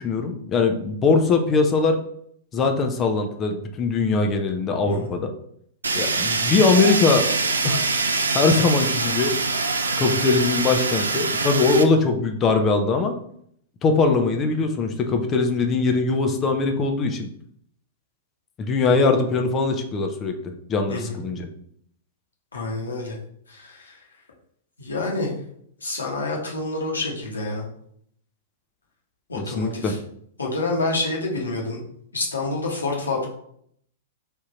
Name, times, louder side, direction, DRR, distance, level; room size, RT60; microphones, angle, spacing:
voice 1, 0.0-2.0 2.5-5.3 5.9-7.2 7.6-7.8 8.3-9.3 10.0-13.2 13.8-17.3 18.6-21.5 29.4-29.9, left 4 dB, 25° left, 5 dB, 0.5 m, -21 dB
voice 2, 4.8-5.2 20.9-21.2 22.5-23.2 23.5-24.0 24.8-25.3 25.8-27.7 29.3-30.0 30.4-31.8 32.1-33.3, left 2 dB, 75° left, -1 dB, 1.2 m, -28 dB
Fire, 5.8-11.8, right 3 dB, 70° right, 0.4 m, -24 dB
3.6 x 2.8 x 4.2 m, 0.67 s
figure-of-eight pair, 100°, 0 cm